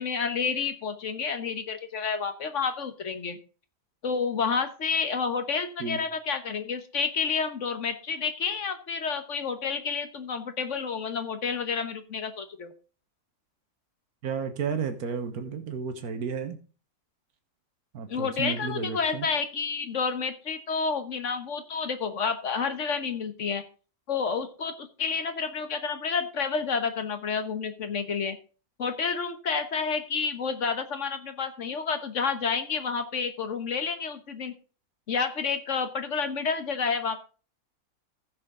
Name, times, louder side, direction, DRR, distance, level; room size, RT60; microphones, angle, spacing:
voice 1, 0.0-3.4 4.0-12.7 18.1-23.6 24.1-28.4 28.8-34.5 35.1-37.2, left 5 dB, 60° left, 8 dB, 1.4 m, -30 dB
voice 2, 14.2-16.6 17.9-19.3, right 6 dB, 85° right, 7 dB, 1.6 m, -32 dB
15.0 x 6.3 x 3.7 m, 0.37 s
omnidirectional pair, 1.5 m